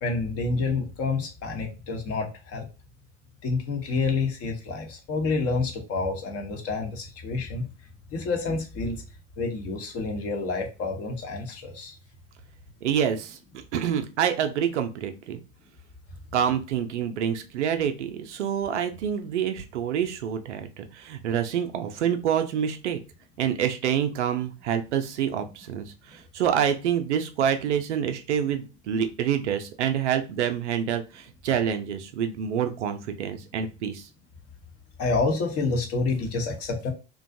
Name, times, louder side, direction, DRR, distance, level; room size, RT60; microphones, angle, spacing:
voice 1, 0.0-2.7 3.4-7.7 8.1-9.0 9.4-12.0 35.0-36.9, left 3 dB, 40° left, 2 dB, 0.9 m, -28 dB
voice 2, 12.8-13.4 13.7-15.4 16.3-23.0 23.4-34.1, right 8 dB, 75° right, 7 dB, 0.5 m, -27 dB
2.5 x 2.2 x 2.5 m, 0.31 s
figure-of-eight pair, 75°, 35 cm